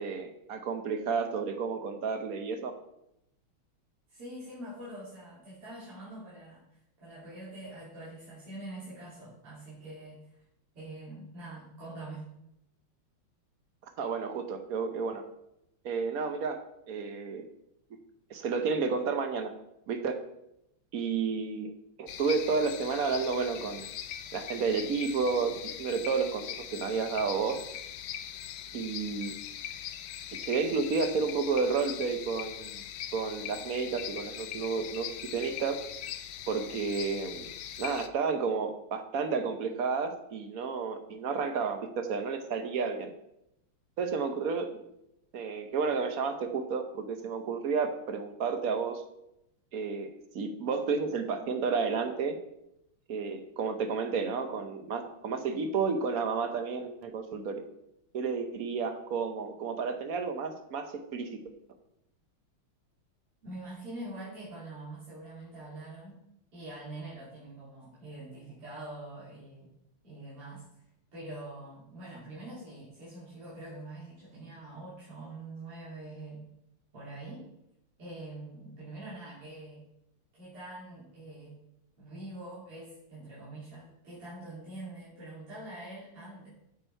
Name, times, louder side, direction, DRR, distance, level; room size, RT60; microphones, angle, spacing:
voice 1, 0.0-2.7 14.0-15.2 15.8-16.6 16.9-17.4 18.3-19.5 19.9-20.2 20.9-21.7 22.0-23.9 24.3-27.6 28.7-29.3 30.5-32.8 33.1-35.8 36.5-37.5 37.8-43.1 44.0-44.8 45.3-49.0 49.7-50.1 50.3-52.4 53.1-57.7 58.1-61.4, right 5 dB, 60° right, 7 dB, 1.0 m, -31 dB
voice 2, 4.1-10.4 10.7-12.3 63.4-66.2 66.5-69.7 70.0-70.6 71.1-76.4 76.9-77.5 78.0-79.9 80.3-81.6 82.0-86.5, right 2 dB, 90° right, -10 dB, 3.7 m, -44 dB
sound 1, 22.1-38.1, left 10 dB, 80° left, 0.9 m, -41 dB
8.4 x 7.4 x 4.4 m, 0.81 s
omnidirectional pair, 2.4 m